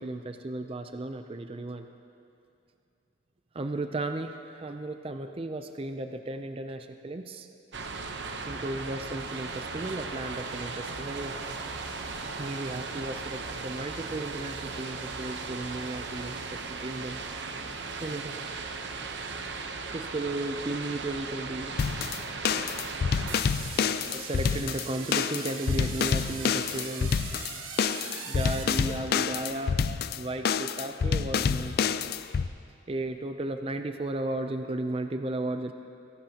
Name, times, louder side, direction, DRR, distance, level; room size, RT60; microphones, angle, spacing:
voice 1, 0.0-1.9 3.5-7.5 8.5-11.4 12.4-17.2 18.0-18.3 19.9-22.5 23.3-23.4 24.1-27.1 28.2-29.8 30.2-31.8 32.9-35.7, right 2 dB, 30° right, 7 dB, 0.5 m, -35 dB
sound 1, 7.7-23.4, right 4 dB, 60° right, 0.9 m, -37 dB
sound 2, 21.8-32.5, left 6 dB, 50° left, 0.3 m, -28 dB
sound 3, 23.3-29.4, right 5 dB, 90° right, 1.4 m, -41 dB
22.5 x 16.0 x 2.9 m, 2.6 s
head